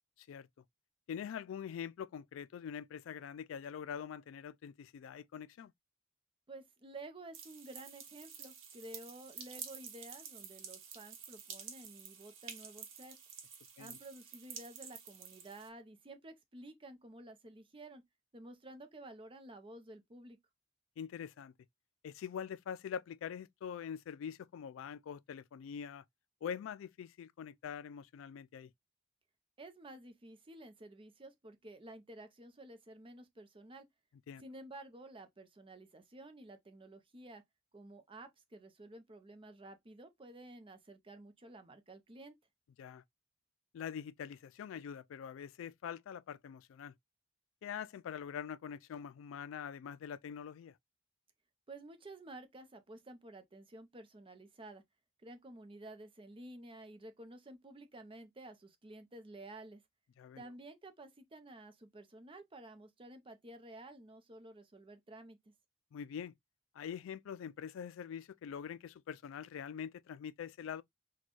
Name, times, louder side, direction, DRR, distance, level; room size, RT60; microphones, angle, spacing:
voice 1, 1.1-5.7 13.8-14.0 21.0-21.5 22.0-26.0 26.4-28.7 34.3-34.4 42.8-43.0 43.7-46.9 47.6-50.8 60.2-60.4 65.9-66.3 66.7-70.8, left 8 dB, 75° left, 0.3 m, -44 dB
voice 2, 6.5-13.2 13.8-18.0 18.3-20.4 29.6-33.9 34.4-37.4 37.7-42.4 51.7-54.8 55.2-59.8 60.4-65.4, right 2 dB, 25° right, 0.6 m, -52 dB
sound 1, 7.3-15.7, right 7 dB, 75° right, 0.9 m, -50 dB
4.2 x 2.2 x 3.0 m
head